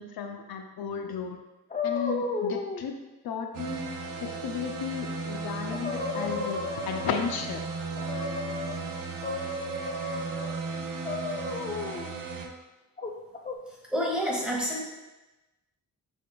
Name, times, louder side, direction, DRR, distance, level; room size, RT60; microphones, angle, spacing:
voice 1, 0.0-1.4 1.8-3.0 3.2-3.9 4.2-7.6, left 7 dB, 80° left, 5 dB, 0.5 m, -34 dB
sound 1, 1.7-2.8 5.3-5.4 5.7-7.4 8.0-8.8 9.2-10.5 11.0-12.1 13.0-13.5, left 3 dB, 25° left, 0.3 m, -33 dB
sound 2, 3.5-12.5, right 4 dB, 60° right, 0.6 m, -36 dB
voice 2, 13.9-14.8, equal, ahead, -5 dB, 1.1 m, -28 dB
5.6 x 3.5 x 2.2 m, 1.1 s
wide cardioid pair, 110°, 36 cm